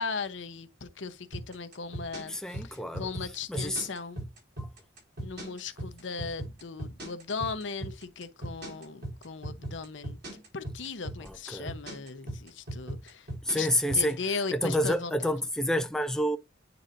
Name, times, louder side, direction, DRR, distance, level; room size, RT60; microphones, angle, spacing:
voice 1, 0.0-4.3 5.2-13.3 13.6-13.7 13.9-15.3, left 4 dB, 75° left, 0.8 m, -37 dB
sound 1, 1.3-14.1, right 1 dB, 60° right, 4.3 m, -38 dB
voice 2, 2.3-3.1 3.5-3.9 4.6-4.7 11.2-11.7 13.4-14.2 14.5-16.4, equal, 5° left, 0.3 m, -28 dB
9.3 x 3.9 x 2.6 m
head